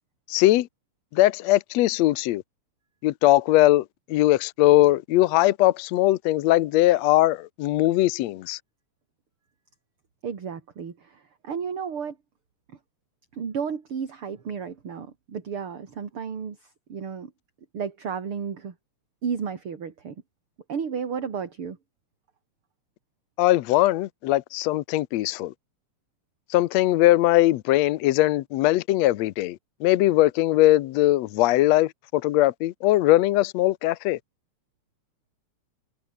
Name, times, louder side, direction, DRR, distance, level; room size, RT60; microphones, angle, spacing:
voice 1, 0.3-0.7 1.1-2.4 3.0-8.6 23.4-25.5 26.5-34.2, left 16 dB, 75° left, 1.8 m, -20 dB
voice 2, 10.2-12.1 13.3-16.6 16.9-17.3 17.7-18.7 19.2-20.1 20.7-21.8, right 6 dB, 45° right, 3.4 m, -32 dB
omnidirectional pair, 3.4 m